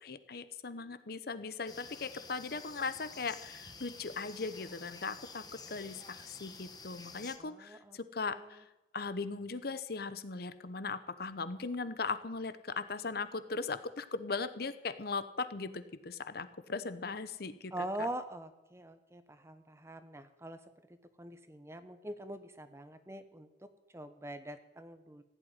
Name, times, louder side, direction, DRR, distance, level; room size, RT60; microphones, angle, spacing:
voice 1, 0.0-8.6 8.9-17.7 18.0-18.1, left 4 dB, 60° left, 12 dB, 0.9 m, -39 dB
sound 1, 1.7-7.4, left 4 dB, 20° left, 1.3 m, -50 dB
voice 2, 7.4-8.0 8.2-8.6 17.7-20.6 21.2-25.2, right 1 dB, 15° right, 10 dB, 1.0 m, -43 dB
15.5 x 8.0 x 9.9 m, 0.96 s
head